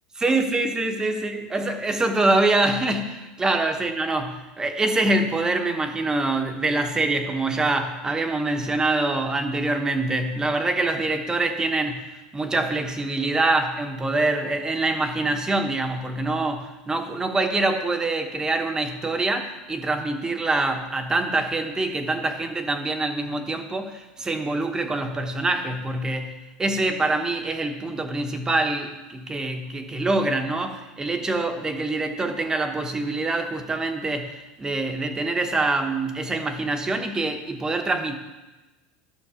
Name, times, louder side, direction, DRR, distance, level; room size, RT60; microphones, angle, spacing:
voice 1, 0.2-38.2, right 2 dB, 15° right, 5 dB, 1.1 m, -25 dB
12.0 x 6.4 x 5.0 m, 1.1 s
supercardioid pair, 120°, 4 cm